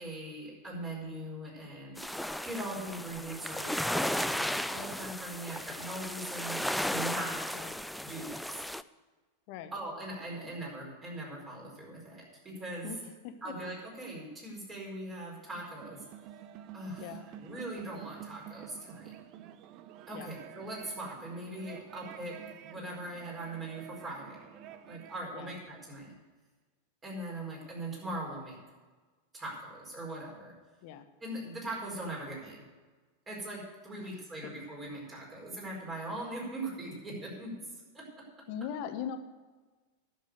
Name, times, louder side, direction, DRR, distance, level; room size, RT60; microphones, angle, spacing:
voice 1, 0.0-7.4 8.0-8.6 9.7-12.9 13.4-16.0 16.7-19.1 20.1-22.4 22.6-24.4 24.8-26.1 27.0-28.6 29.3-30.5 31.2-32.6 33.3-37.6 37.9-38.2, right 1 dB, 20° right, -2 dB, 4.7 m, -41 dB
sound 1, 2.0-8.8, left 1 dB, ahead, 0.3 m, -35 dB
voice 2, 12.8-13.5 17.0-17.3 20.1-20.4 25.3-25.5 30.8-31.0 34.0-34.1 38.5-39.2, left 8 dB, 45° left, 9 dB, 1.0 m, -40 dB
sound 2, 15.4-25.2, right 10 dB, 40° right, 0.7 m, -49 dB
10.5 x 7.3 x 7.8 m, 1.3 s
figure-of-eight pair, 90°, 0 cm